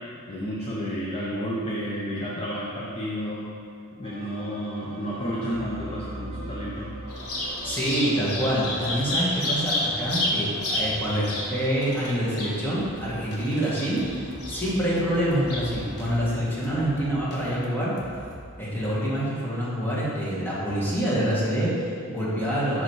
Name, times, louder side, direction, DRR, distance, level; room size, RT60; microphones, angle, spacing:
voice 1, 0.3-3.5 4.0-6.9, equal, 25° left, -6 dB, 0.7 m, -31 dB
sound 1, 4.0-17.6, right 1 dB, 25° right, 0.6 m, -42 dB
Bird vocalization bird call bird song, 7.1-16.1, left 1 dB, 70° left, 1.2 m, -31 dB
voice 2, 7.6-17.9 18.6-22.8, equal, 10° left, -8 dB, 1.7 m, -26 dB
sound 2, 12.7-18.5, equal, 50° left, 1.0 m, -44 dB
6.1 x 5.1 x 4.7 m, 2.3 s
head